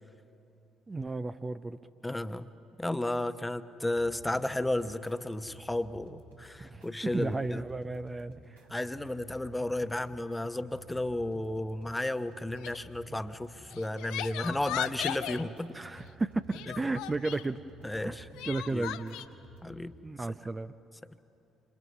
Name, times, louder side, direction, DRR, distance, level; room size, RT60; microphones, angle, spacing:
voice 1, 0.9-1.8 6.6-8.7 15.7-17.6 18.0-18.2 18.4-19.2 20.0-20.7, right 3 dB, 25° right, 10 dB, 0.6 m, -34 dB
voice 2, 2.0-2.5 2.8-7.6 8.7-15.7 17.8-18.3 18.7-18.8 19.6-19.9, left 1 dB, 10° left, 11 dB, 1.0 m, -33 dB
sound 1, 3.8-19.8, right 1 dB, 85° right, 3.1 m, -53 dB
Crying sobbing, 12.6-12.9 13.7-15.4 16.5-17.5 18.4-19.3, left 13 dB, 65° left, 0.7 m, -37 dB
27.5 x 26.0 x 5.6 m, 2.7 s
figure-of-eight pair, 50°, 0 cm